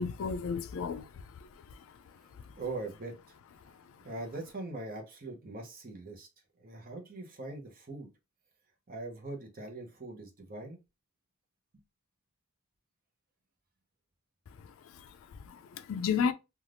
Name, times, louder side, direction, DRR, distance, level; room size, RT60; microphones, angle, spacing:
voice 1, 0.0-2.0 2.4-2.5 14.6-16.3, left 6 dB, 60° left, 0.3 m, -34 dB
voice 2, 2.6-3.1 4.0-6.3 6.6-8.1 8.9-10.8, right 2 dB, 40° right, 0.7 m, -41 dB
2.5 x 2.4 x 3.2 m
head